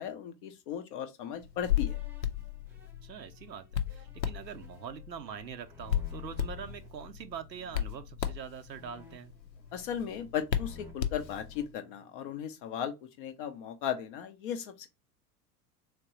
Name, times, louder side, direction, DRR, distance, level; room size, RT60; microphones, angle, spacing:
voice 1, 0.0-2.0 9.7-14.9, left 9 dB, 35° left, 0.4 m, -36 dB
Hands, 1.4-11.7, left 10 dB, 85° left, 0.6 m, -36 dB
sound 1, 1.6-6.9 7.5-8.0 8.7-10.2 10.5-12.4, right 1 dB, 5° right, 0.7 m, -56 dB
voice 2, 3.0-9.3, right 7 dB, 85° right, 0.6 m, -44 dB
3.6 x 2.9 x 2.8 m
figure-of-eight pair, 90°, 49 cm